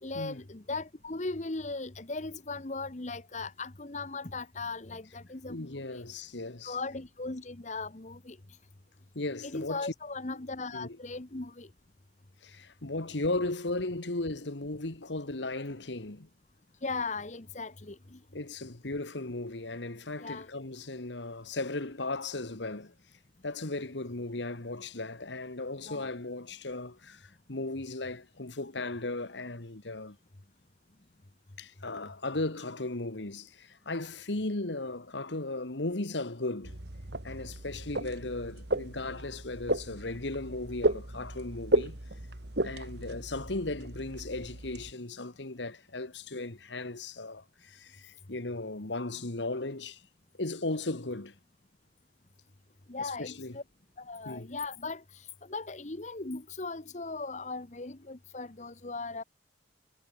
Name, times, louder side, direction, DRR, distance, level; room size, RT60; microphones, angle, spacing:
voice 1, 0.0-6.0 6.6-8.4 9.4-11.7 16.8-18.2 20.2-20.5 25.8-26.1 52.9-53.6 54.0-59.2, left 3 dB, 40° left, 1.1 m, -38 dB
voice 2, 5.5-6.8 9.1-9.9 10.3-10.4 10.7-11.0 12.4-16.3 18.3-22.9 23.4-30.2 31.6-36.8 37.2-42.0 42.6-50.0 50.4-51.4 53.0-53.6 54.3-54.5, left 2 dB, 75° left, 1.8 m, -36 dB
sound 1, 36.6-44.9, right 1 dB, 65° right, 2.3 m, -34 dB
head